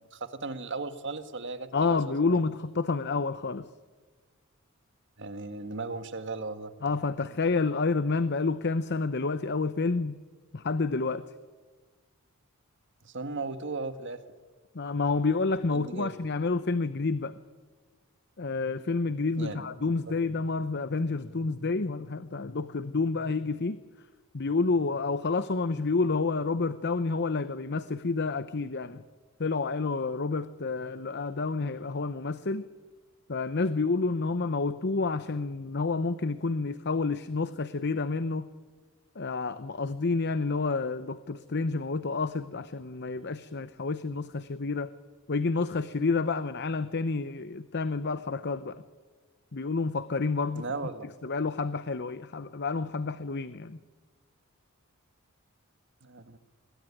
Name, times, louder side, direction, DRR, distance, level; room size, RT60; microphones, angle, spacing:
voice 1, 0.1-2.0 2.3-2.4 5.2-6.7 13.0-14.2 15.7-16.1 19.4-20.1 50.5-51.1 56.0-56.4, right 3 dB, 55° right, 10 dB, 1.7 m, -37 dB
voice 2, 1.7-3.7 6.8-10.2 10.5-11.2 14.7-17.4 18.4-23.8 24.3-29.0 29.4-32.6 33.3-38.5 39.2-44.9 45.3-48.8 49.5-50.7 51.2-53.8, left 3 dB, 50° left, 13 dB, 0.8 m, -29 dB
26.0 x 21.0 x 9.8 m, 1.4 s
head